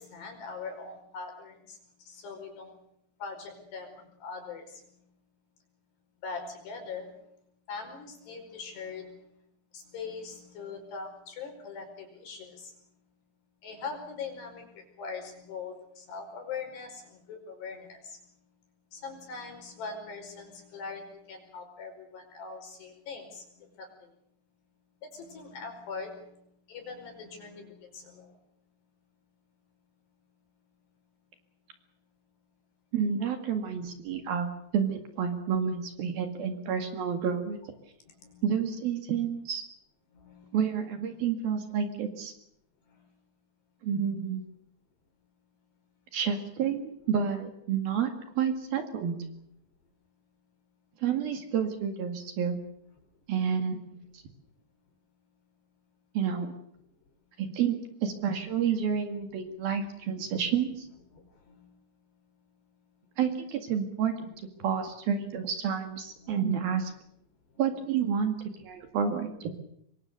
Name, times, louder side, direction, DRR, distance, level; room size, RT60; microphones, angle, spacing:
voice 1, 0.0-1.8 2.1-2.8 3.2-5.0 6.2-7.2 7.7-9.3 9.7-12.7 13.6-18.2 18.9-24.1 25.0-28.4 38.1-38.5 40.1-40.6 42.9-43.1 61.1-61.8 66.2-66.3, left 4 dB, 60° left, 4 dB, 7.1 m, -42 dB
voice 2, 32.9-37.6 38.4-39.6 40.5-42.3 43.8-44.4 46.1-49.2 51.0-52.6 53.3-54.0 56.2-56.5 57.4-60.9 63.2-64.3 64.6-66.9 67.6-68.4 68.6-69.5, right 7 dB, 60° right, 6 dB, 3.6 m, -29 dB
25.5 x 23.5 x 6.8 m, 0.72 s
omnidirectional pair, 5.4 m